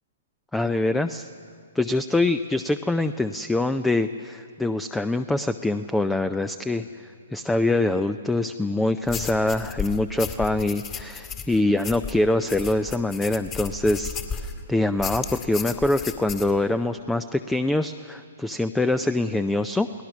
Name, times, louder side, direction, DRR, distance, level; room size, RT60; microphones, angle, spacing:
voice 1, 0.5-1.3 1.7-6.8 7.3-19.9, left 2 dB, 5° left, 12 dB, 0.5 m, -24 dB
sound 1, 9.1-14.6 15.0-16.5, left 7 dB, 25° left, 2.1 m, -34 dB
29.5 x 19.0 x 6.2 m, 2.4 s
figure-of-eight pair, 120°, 0 cm